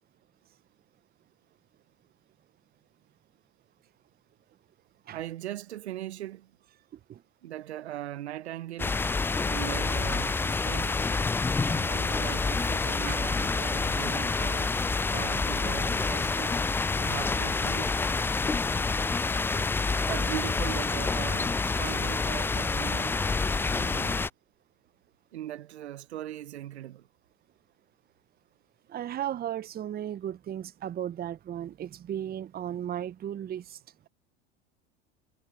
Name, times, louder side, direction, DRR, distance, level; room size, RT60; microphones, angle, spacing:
voice 1, 5.1-6.5 7.4-9.0 9.4-11.1 11.6-14.7 15.1-16.6 17.0-17.9 20.1-23.2 23.6-24.3 25.3-27.1, right 13 dB, 80° right, 1.0 m, -39 dB
sound 1, 8.8-24.3, left 4 dB, 5° left, 0.3 m, -28 dB
voice 2, 28.9-33.8, right 10 dB, 30° right, 0.9 m, -35 dB
hypercardioid pair, 85°, 32 cm